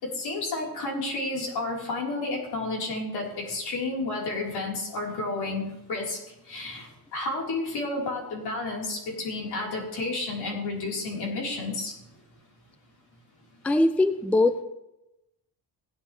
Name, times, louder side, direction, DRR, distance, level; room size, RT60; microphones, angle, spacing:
voice 1, 0.0-6.2 6.5-11.9, left 2 dB, 80° left, -2 dB, 4.0 m, -31 dB
voice 2, 13.6-14.6, left 2 dB, 5° left, 10 dB, 0.4 m, -21 dB
17.0 x 10.0 x 3.3 m, 0.92 s
cardioid pair, 155°, 39 cm